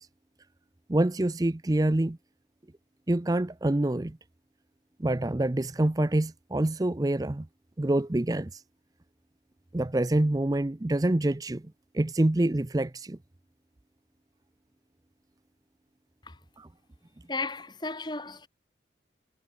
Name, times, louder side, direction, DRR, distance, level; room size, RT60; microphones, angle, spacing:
voice 1, 0.9-2.2 3.1-4.2 5.0-7.5 7.8-8.6 9.7-11.6 11.9-13.2 16.6-16.7, right 1 dB, 20° right, 0.5 m, -26 dB
voice 2, 17.3-18.5, left 3 dB, 25° left, 2.5 m, -34 dB
head